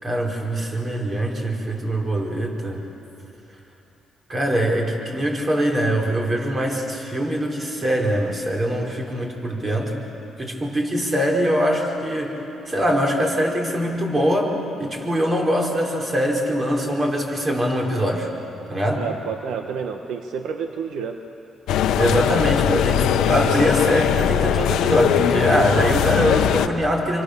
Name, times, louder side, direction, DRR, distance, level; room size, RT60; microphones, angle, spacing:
voice 1, 0.0-2.8 4.3-10.0 10.4-18.3 18.7-19.0 21.9-27.2, equal, 30° right, 0 dB, 4.8 m, -23 dB
voice 2, 18.9-21.2, right 6 dB, 75° right, 6 dB, 1.1 m, -30 dB
sound 1, 21.7-26.7, left 9 dB, 85° left, 0.9 m, -20 dB
27.0 x 25.0 x 6.8 m, 3.0 s
cardioid pair, 90°, 0 cm